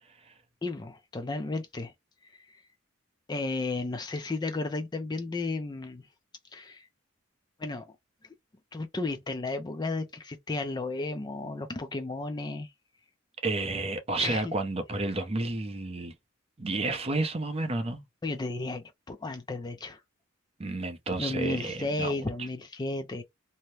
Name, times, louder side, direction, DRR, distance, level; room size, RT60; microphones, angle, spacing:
voice 1, 0.6-1.9 2.3-2.6 3.3-6.0 6.5-6.9 7.6-7.9 8.7-12.7 14.2-14.5 18.2-20.0 21.2-23.2, left 2 dB, 20° left, 0.4 m, -33 dB
voice 2, 13.4-16.1 16.6-18.0 20.6-22.1, right 2 dB, 30° right, 0.6 m, -31 dB
2.7 x 2.1 x 3.1 m
head